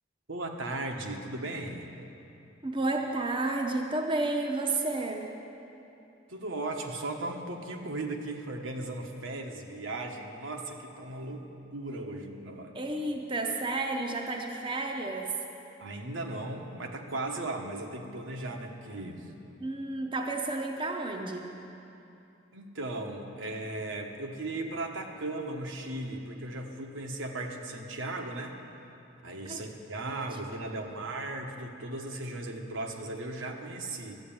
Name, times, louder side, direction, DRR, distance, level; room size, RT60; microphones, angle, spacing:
voice 1, 0.3-1.9 6.3-11.4 11.7-12.8 15.8-19.2 22.5-28.6 29.2-34.2, right 2 dB, 75° right, 2 dB, 1.2 m, -37 dB
voice 2, 2.6-5.3 12.7-15.3 19.6-21.5 29.5-29.6 30.0-30.4, right 2 dB, 25° right, 2 dB, 0.7 m, -31 dB
12.5 x 8.0 x 8.8 m, 2.8 s
head